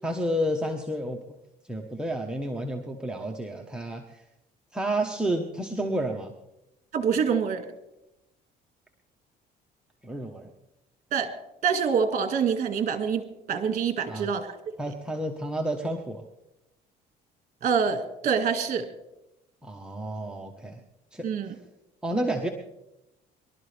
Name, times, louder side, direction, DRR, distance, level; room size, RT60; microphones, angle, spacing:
voice 1, 0.0-1.2 1.7-4.2 4.7-6.3 10.0-10.5 14.1-14.3 14.8-16.2 19.6-20.8 21.1-21.3 22.0-22.5, right 1 dB, 5° right, 0 dB, 1.2 m, -30 dB
voice 2, 6.9-7.6 11.1-11.3 11.6-14.5 14.9-15.0 17.6-18.9 21.2-21.5, right 6 dB, 45° right, 7 dB, 2.0 m, -26 dB
23.5 x 12.5 x 3.5 m, 0.88 s
cardioid pair, 110°, 17 cm